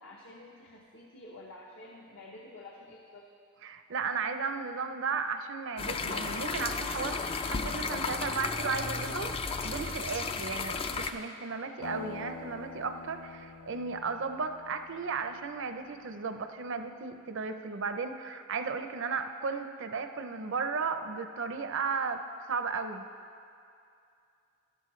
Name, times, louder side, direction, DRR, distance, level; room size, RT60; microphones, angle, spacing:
voice 1, 0.0-3.3, left 2 dB, 65° left, -2 dB, 1.0 m, -49 dB
voice 2, 3.6-9.4 9.6-22.2 22.5-23.0, right 5 dB, 60° right, 8 dB, 0.6 m, -35 dB
sound 1, 5.8-11.1, left 4 dB, 25° left, 0.4 m, -34 dB
sound 2, 11.8-16.1, left 4 dB, 85° left, 0.5 m, -47 dB
13.0 x 12.0 x 3.2 m, 2.5 s
head